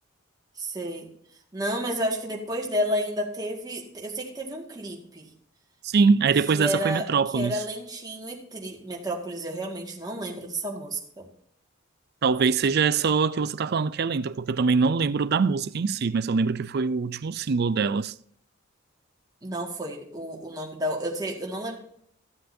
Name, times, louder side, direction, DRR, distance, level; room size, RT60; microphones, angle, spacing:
voice 1, 0.6-1.1 1.5-5.3 6.5-11.3 19.4-21.8, equal, 20° right, 1.9 m, -31 dB
voice 2, 5.8-7.6 12.2-18.1, right 5 dB, 50° right, 0.4 m, -23 dB
15.0 x 7.6 x 2.7 m
head